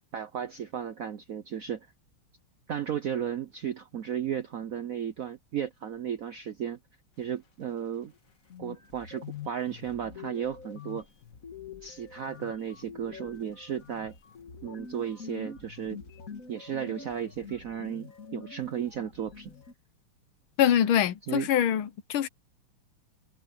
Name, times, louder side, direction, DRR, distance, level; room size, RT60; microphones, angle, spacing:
voice 1, 0.1-1.9 2.7-6.8 7.2-8.1 8.6-11.1 11.8-14.2 14.6-16.0 16.5-19.5 21.3-21.5, right 9 dB, 70° right, 0.8 m, -34 dB
sound 1, 8.1-8.2 8.5-19.7, left 6 dB, 40° left, 1.9 m, -45 dB
voice 2, 20.6-22.3, left 10 dB, 75° left, 1.7 m, -24 dB
omnidirectional pair, 2.4 m